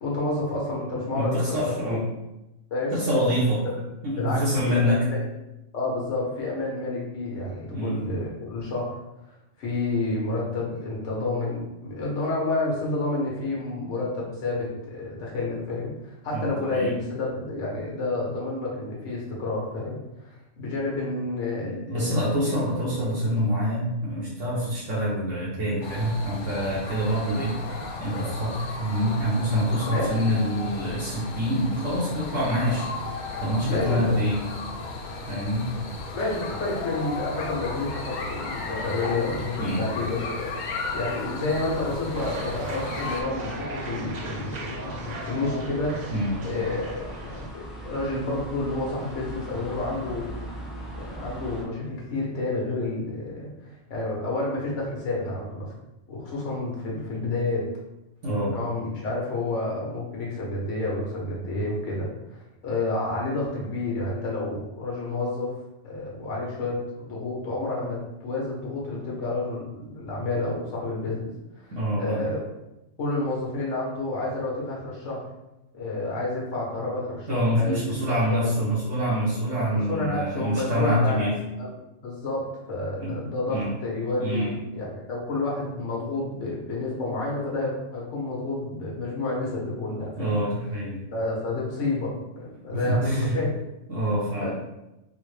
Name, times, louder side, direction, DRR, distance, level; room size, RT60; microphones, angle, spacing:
voice 1, 0.0-1.6 1.8-2.0 2.7-2.9 3.6-3.7 4.1-5.2 5.7-9.0 9.6-22.5 29.9-30.2 33.6-34.2 36.1-40.5 40.9-46.0 46.4-50.5 50.9-55.7 56.1-57.6 58.5-65.5 65.8-71.3 71.6-71.7 71.9-72.4 73.0-75.2 75.7-78.5 79.7-81.7 82.0-90.4 91.1-93.5 94.4-94.5, left 2 dB, 85° left, -4 dB, 1.3 m, -30 dB
voice 2, 1.1-2.0 2.9-3.6 4.0-5.0 7.7-8.0 16.3-16.9 21.6-32.9 33.2-34.4 35.3-35.7 39.6-39.9 46.1-46.3 58.2-58.6 71.7-72.2 77.3-81.4 83.0-83.2 83.5-83.7 84.2-84.5 90.2-91.0 92.7-93.4 93.9-94.5, equal, 80° right, -8 dB, 1.2 m, -26 dB
sound 1, 25.8-43.2, left 3 dB, 55° left, 0.6 m, -35 dB
sound 2, 41.5-51.6, right 1 dB, ahead, 0.4 m, -40 dB
sound 3, 42.1-47.5, right 1 dB, 60° right, 0.4 m, -37 dB
3.8 x 2.1 x 3.2 m, 0.94 s
omnidirectional pair, 1.2 m